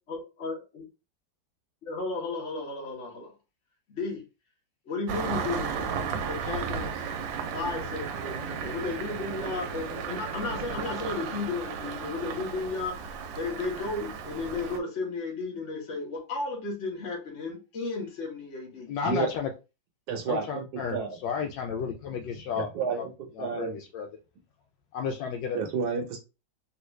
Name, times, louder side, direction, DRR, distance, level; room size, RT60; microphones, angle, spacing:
voice 1, 0.1-0.8 1.8-3.3 3.9-4.2 4.9-7.0 7.4-19.0, left 3 dB, 45° left, 1.3 m, -34 dB
Engine starting, 5.1-14.8, right 6 dB, 90° right, 1.3 m, -34 dB
voice 2, 18.9-19.5 20.3-21.0 21.2-22.7 23.0-23.1 23.4-24.1 24.9-25.6, left 7 dB, 80° left, 1.3 m, -32 dB
voice 3, 20.1-21.2 22.5-23.7 25.5-26.2, right 5 dB, 65° right, 1.2 m, -31 dB
3.5 x 2.4 x 3.0 m
omnidirectional pair, 2.0 m